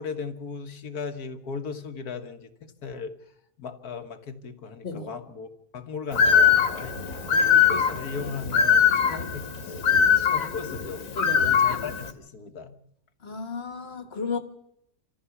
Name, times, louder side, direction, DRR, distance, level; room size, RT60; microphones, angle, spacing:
voice 1, 0.0-3.1 3.6-7.0 7.3-9.9 10.1-11.0 11.4-12.7, left 5 dB, 80° left, 1.8 m, -37 dB
Bird, 6.1-12.1, left 7 dB, 65° left, 1.9 m, -22 dB
voice 2, 11.2-11.6 13.2-14.4, left 4 dB, 45° left, 1.8 m, -33 dB
27.0 x 14.5 x 7.1 m
omnidirectional pair, 1.6 m